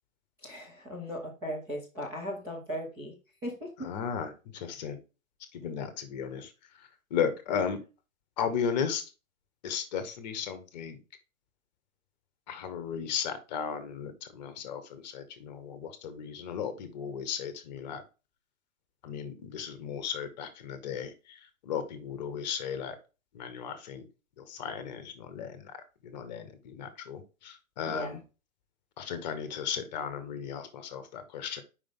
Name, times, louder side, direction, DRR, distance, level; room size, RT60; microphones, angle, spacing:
voice 1, 0.4-3.2 3.4-3.9 7.5-7.6 27.9-28.2, equal, 5° right, -6 dB, 0.5 m, -38 dB
voice 2, 3.8-5.0 5.5-6.5 7.1-7.8 8.4-9.0 9.6-11.0 12.5-18.0 19.0-21.1 21.7-22.9 23.3-24.1 24.5-25.6 26.0-28.2 29.0-31.6, left 7 dB, 30° left, 10 dB, 0.9 m, -35 dB
5.2 x 5.1 x 3.5 m, 0.31 s
figure-of-eight pair, 130°, 41 cm